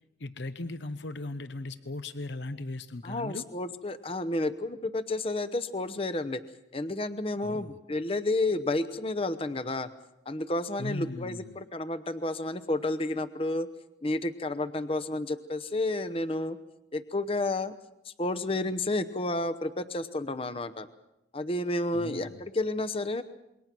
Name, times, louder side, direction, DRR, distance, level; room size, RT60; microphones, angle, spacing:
voice 1, 0.2-3.4 7.4-7.8 10.8-11.6 21.9-22.4, left 2 dB, 65° left, 11 dB, 0.9 m, -38 dB
voice 2, 3.0-6.4 6.7-9.9 10.3-13.7 14.0-16.6 16.9-17.7 18.1-20.9 21.3-23.2, left 2 dB, 30° left, 11 dB, 0.9 m, -31 dB
28.0 x 22.5 x 6.1 m, 0.87 s
head